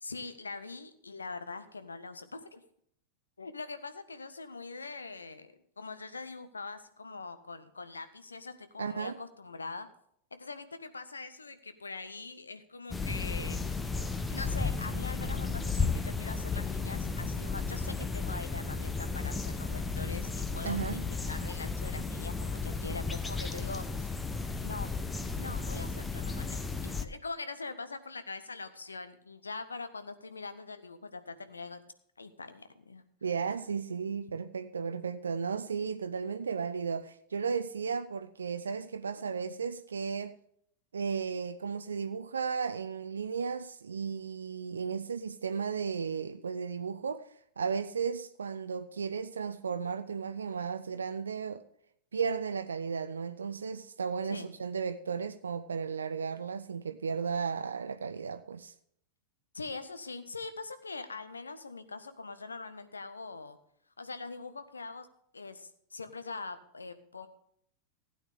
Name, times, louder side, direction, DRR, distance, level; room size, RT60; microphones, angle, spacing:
voice 1, 0.0-2.6 3.4-9.9 10.3-13.8 14.3-24.1 24.6-24.9 25.4-31.8 32.2-33.0 39.2-39.3 54.3-54.5 59.5-63.6 64.0-65.1 65.3-67.3, left 3 dB, 75° left, 0.9 m, -43 dB
voice 2, 8.8-9.2 20.6-21.1 33.2-40.3 40.9-51.6 52.1-58.7, right 6 dB, 70° right, 0.4 m, -34 dB
sound 1, 12.9-27.1, left 4 dB, 10° left, 0.9 m, -34 dB
16.0 x 9.1 x 3.6 m
figure-of-eight pair, 90°, 0 cm